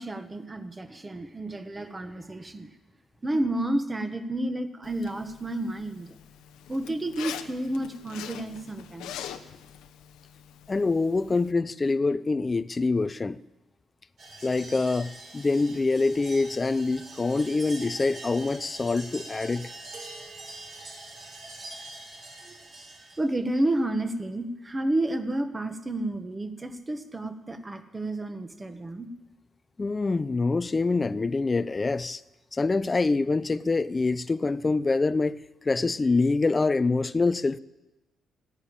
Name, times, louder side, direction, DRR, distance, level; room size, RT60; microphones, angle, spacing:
voice 1, 0.0-2.7 3.2-6.2 6.7-9.2 22.4-22.6 23.2-29.1, right 1 dB, 20° right, 1.3 m, -30 dB
Zipper (clothing), 4.8-11.5, left 10 dB, 90° left, 0.8 m, -43 dB
voice 2, 10.7-13.4 14.4-19.7 29.8-32.2 32.5-35.4 35.6-37.6, left 3 dB, 25° left, 0.5 m, -25 dB
sound 1, 14.2-23.2, right 2 dB, 60° right, 5.7 m, -44 dB
15.5 x 9.8 x 8.7 m
cardioid pair, 90°, 0 cm